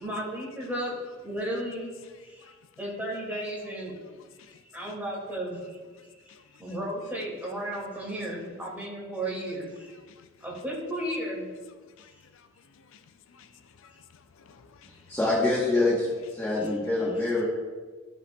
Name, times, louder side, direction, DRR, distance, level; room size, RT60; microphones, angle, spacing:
voice 1, 0.0-1.9 2.2-4.0 4.5-10.0 10.4-11.5, right 1 dB, 10° right, 2.1 m, -34 dB
voice 2, 12.0-12.5 12.9-13.0 13.3-13.5 13.8-14.9, left 6 dB, 65° left, 0.4 m, -56 dB
voice 3, 15.1-17.4, left 2 dB, 10° left, 1.0 m, -25 dB
13.5 x 5.3 x 2.2 m
head